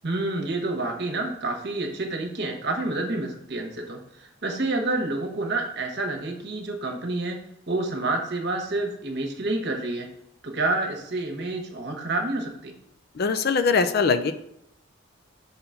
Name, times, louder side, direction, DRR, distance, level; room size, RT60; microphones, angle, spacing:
voice 1, 0.0-7.4 7.7-10.1 10.4-12.7, right 2 dB, 50° right, 3 dB, 1.1 m, -28 dB
voice 2, 13.1-14.3, left 5 dB, 45° left, 10 dB, 0.4 m, -22 dB
5.7 x 3.9 x 5.7 m, 0.75 s
head